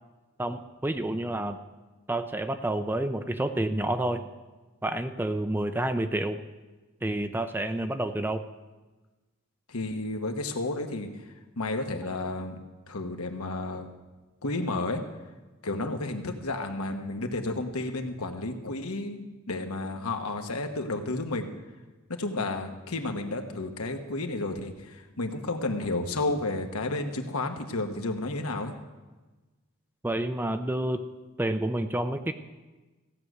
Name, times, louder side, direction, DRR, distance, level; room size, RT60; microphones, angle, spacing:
voice 1, 0.4-1.6 2.1-4.3 4.8-6.4 7.0-8.4 30.0-31.0 31.4-32.3, right 1 dB, 10° right, 9 dB, 0.4 m, -29 dB
voice 2, 9.7-11.3 11.6-12.6 12.9-13.9 14.4-15.0 15.6-21.5 22.2-28.7, left 2 dB, 75° left, 5 dB, 1.2 m, -32 dB
15.5 x 6.2 x 8.0 m, 1.2 s
head